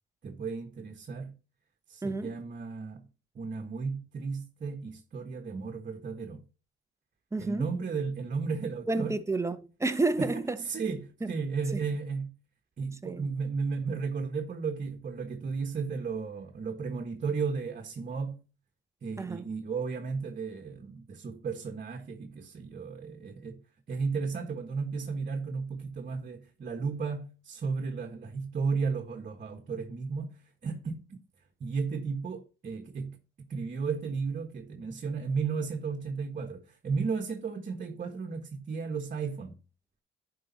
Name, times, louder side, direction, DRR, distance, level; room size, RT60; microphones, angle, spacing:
voice 1, 0.2-1.3 1.9-3.1 3.3-6.4 7.4-9.2 10.2-12.3 12.8-18.4 19.0-23.6 23.9-31.0 31.6-33.2 33.5-39.6, right 5 dB, 45° right, 1.4 m, -34 dB
voice 2, 2.0-2.3 7.3-7.7 8.9-10.6 11.7-11.8 13.0-13.3 19.2-19.5, right 2 dB, 15° right, 0.9 m, -30 dB
11.0 x 5.0 x 4.1 m
cardioid pair, 90°, 20 cm